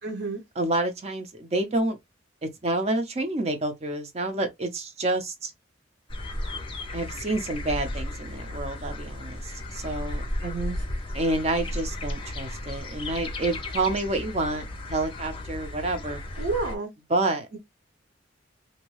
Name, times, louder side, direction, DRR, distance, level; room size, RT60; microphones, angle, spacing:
voice 1, 0.0-0.4 10.4-10.8 16.4-16.9 17.5-17.6, right 4 dB, 60° right, 0.9 m, -30 dB
voice 2, 0.6-2.0 2.4-5.5 6.9-10.2 11.1-14.6 14.9-16.2 17.1-17.5, right 2 dB, 35° right, 0.6 m, -28 dB
sound 1, 6.1-16.8, left 1 dB, 30° left, 0.6 m, -34 dB
2.7 x 2.2 x 3.1 m
head